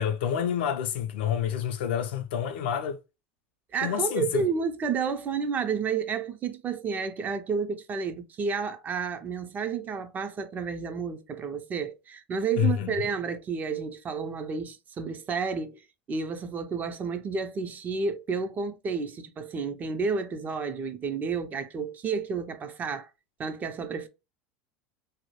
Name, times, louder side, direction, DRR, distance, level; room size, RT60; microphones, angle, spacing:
voice 1, 0.0-3.0 3.8-4.5 12.6-13.0, left 9 dB, 80° left, 0.4 m, -28 dB
voice 2, 3.7-15.8 16.1-23.1 23.4-24.1, right 5 dB, 30° right, 0.4 m, -31 dB
2.2 x 2.0 x 2.9 m
supercardioid pair, 105°, 6 cm